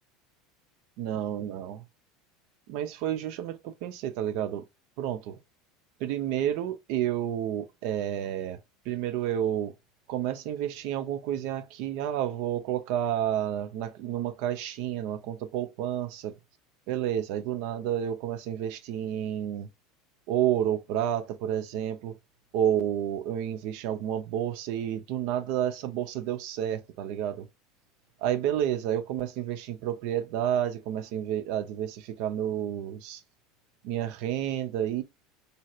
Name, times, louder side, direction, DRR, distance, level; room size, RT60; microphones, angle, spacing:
voice 1, 1.0-1.8 2.7-4.6 5.0-5.4 6.0-8.6 8.9-9.7 10.1-16.3 16.9-19.7 20.3-22.2 22.5-27.5 28.2-33.2 33.8-35.0, right 10 dB, 65° right, 0.5 m, -30 dB
3.1 x 2.7 x 2.3 m
hypercardioid pair, 85°, 0 cm